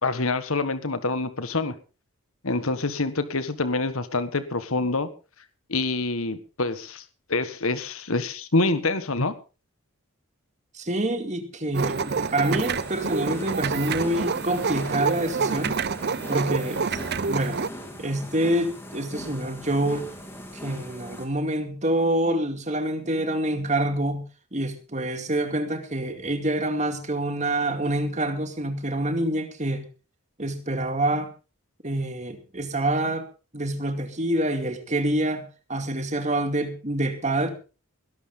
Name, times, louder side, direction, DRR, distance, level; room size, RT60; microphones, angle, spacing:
voice 1, 0.0-1.7 2.4-5.1 5.7-7.0 7.3-9.3, left 3 dB, 70° left, 11 dB, 1.5 m, -26 dB
voice 2, 10.7-15.7 16.3-17.0 17.3-17.6 18.0-20.1 20.5-29.8 30.4-31.3 31.8-33.3 33.5-37.5, right 1 dB, 30° right, 7 dB, 2.4 m, -26 dB
sound 1, 11.7-17.7, right 5 dB, 45° right, 0.6 m, -28 dB
sound 2, 12.5-21.3, equal, 10° left, 3.0 m, -40 dB
21.0 x 12.0 x 3.8 m, 0.34 s
head